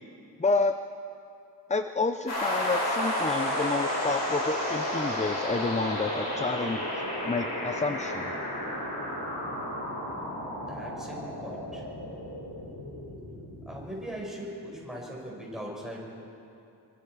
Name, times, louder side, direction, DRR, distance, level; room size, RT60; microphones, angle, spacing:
voice 1, 0.4-0.8 1.7-6.8 7.2-8.3, left 3 dB, 15° left, 9 dB, 0.4 m, -29 dB
sound 1, 2.3-13.9, left 1 dB, 80° left, 7.1 m, -32 dB
voice 2, 10.6-11.8 13.6-16.0, equal, ahead, -3 dB, 5.1 m, -40 dB
25.5 x 24.0 x 4.8 m, 2.7 s
wide cardioid pair, 140°, 42 cm